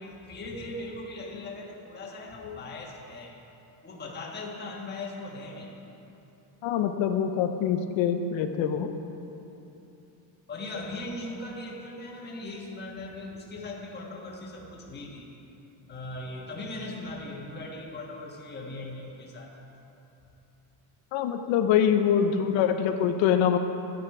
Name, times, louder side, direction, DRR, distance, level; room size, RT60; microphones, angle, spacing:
voice 1, 0.0-3.3 3.8-5.7 10.5-15.3 15.9-19.5, left 2 dB, 20° left, -2 dB, 1.4 m, -39 dB
voice 2, 6.6-8.9 21.1-23.6, left 8 dB, 85° left, 6 dB, 0.8 m, -24 dB
12.0 x 9.4 x 4.7 m, 3.0 s
cardioid pair, 170°, 45 cm